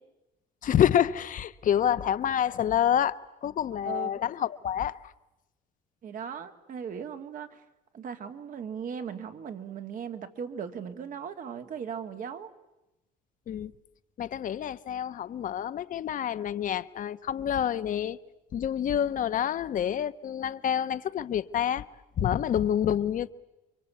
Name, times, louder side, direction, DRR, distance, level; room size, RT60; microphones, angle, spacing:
voice 1, 0.6-5.1 13.5-13.7 14.2-18.2 18.5-21.9 22.2-23.3, left 9 dB, 50° left, 1.0 m, -27 dB
voice 2, 6.0-7.6 7.9-12.5, right 7 dB, 50° right, 2.2 m, -38 dB
29.0 x 23.5 x 8.5 m
cardioid pair, 110°, 17 cm